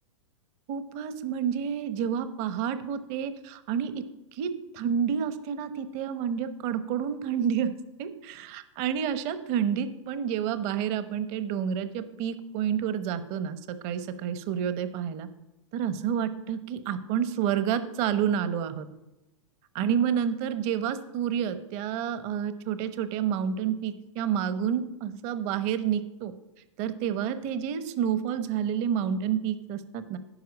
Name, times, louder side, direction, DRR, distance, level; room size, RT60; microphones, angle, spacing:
voice 1, 0.7-4.0 4.3-7.7 8.0-15.3 15.7-18.9 19.7-26.3 26.8-30.2, right 8 dB, 40° right, 12 dB, 1.0 m, -29 dB
10.5 x 5.9 x 8.5 m, 0.94 s
hypercardioid pair, 115°, 16 cm